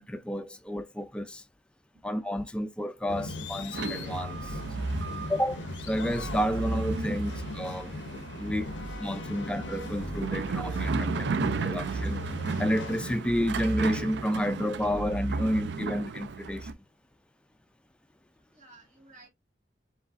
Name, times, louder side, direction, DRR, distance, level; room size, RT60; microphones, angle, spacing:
voice 1, 0.0-1.4 2.0-4.6 5.3-7.9 8.4-8.7 9.0-12.2 12.6-16.7, equal, 5° left, 0.3 m, -31 dB
sound 1, 3.1-13.2, left 2 dB, 80° left, 0.5 m, -39 dB
sound 2, 3.7-16.7, right 4 dB, 70° right, 0.4 m, -34 dB
voice 2, 18.5-19.3, right 2 dB, 45° right, 1.8 m, -57 dB
4.8 x 3.1 x 2.4 m
head